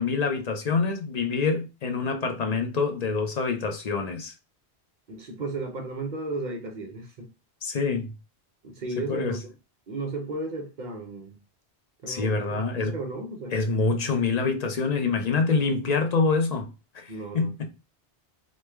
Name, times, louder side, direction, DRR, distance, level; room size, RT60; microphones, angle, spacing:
voice 1, 0.0-4.3 7.6-8.1 9.1-9.4 12.1-12.9 13.5-16.7 16.9-17.7, left 4 dB, 55° left, 0.5 m, -26 dB
voice 2, 5.1-7.3 8.6-9.4 9.9-11.4 12.0-13.5 17.1-17.7, right 2 dB, 50° right, 0.7 m, -34 dB
3.1 x 2.2 x 3.2 m
omnidirectional pair, 1.1 m